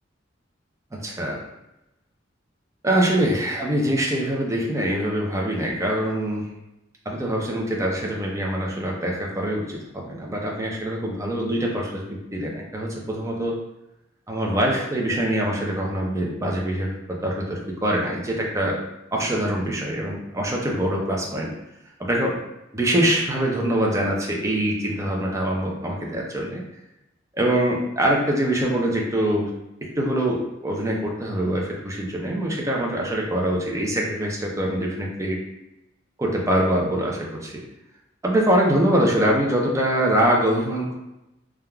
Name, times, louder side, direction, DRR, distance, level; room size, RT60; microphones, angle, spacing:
voice 1, 0.9-1.4 2.8-6.5 7.1-13.6 14.3-18.8 19.1-21.5 22.0-22.4 22.7-26.6 27.3-29.5 29.8-35.4 36.2-37.6 38.2-40.9, right 1 dB, 15° right, -2 dB, 0.5 m, -24 dB
3.3 x 2.3 x 2.2 m, 0.89 s
head